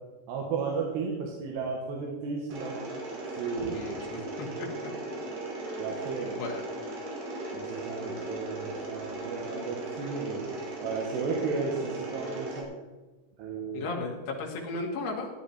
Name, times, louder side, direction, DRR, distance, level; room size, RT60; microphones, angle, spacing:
voice 1, 0.3-2.9 3.4-3.7 4.1-4.3 4.9-5.0 5.8-6.4 7.5-10.5 10.8-12.7 13.4-13.9, right 4 dB, 80° right, -1 dB, 3.8 m, -34 dB
Mechanisms, 2.5-12.6, right 2 dB, 60° right, 4.2 m, -37 dB
voice 2, 3.7-4.7 6.4-6.6 13.7-15.3, left 3 dB, 80° left, 0 dB, 4.3 m, -35 dB
16.0 x 10.5 x 4.3 m, 1.2 s
omnidirectional pair, 4.7 m